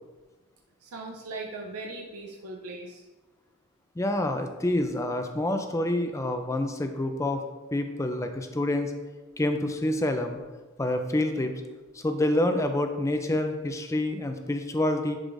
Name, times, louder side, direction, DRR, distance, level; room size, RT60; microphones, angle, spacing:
voice 1, 0.8-3.0, right 2 dB, 75° right, 0 dB, 0.6 m, -39 dB
voice 2, 4.0-7.4 7.7-8.9 9.4-10.4 10.8-11.5 11.9-15.2, left 1 dB, 15° left, 6 dB, 0.4 m, -27 dB
9.9 x 4.8 x 2.6 m, 1.2 s
head